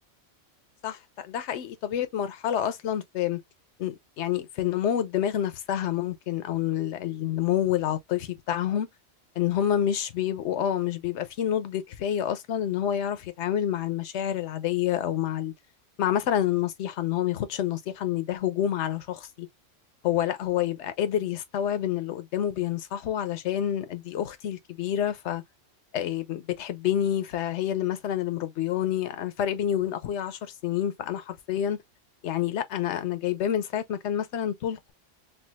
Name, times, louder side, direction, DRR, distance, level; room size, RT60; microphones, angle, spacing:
voice 1, 0.8-3.4 3.8-8.9 9.4-15.5 16.0-19.5 20.0-25.4 25.9-31.8 32.2-34.9, left 10 dB, 70° left, 1.0 m, -28 dB
4.5 x 2.4 x 2.2 m
omnidirectional pair, 1.3 m